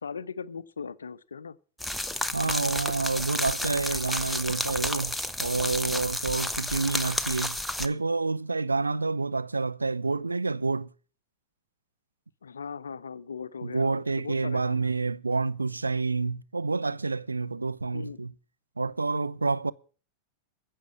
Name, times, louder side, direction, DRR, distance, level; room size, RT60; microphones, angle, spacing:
voice 1, 0.0-1.6 12.4-15.0 17.9-18.2, left 6 dB, 70° left, 0.5 m, -39 dB
sound 1, 1.8-7.9, left 1 dB, 5° left, 0.8 m, -31 dB
voice 2, 2.3-10.9 13.6-18.3 18.8-19.7, right 3 dB, 80° right, 0.5 m, -28 dB
15.5 x 6.4 x 7.3 m
figure-of-eight pair, 90°, 0 cm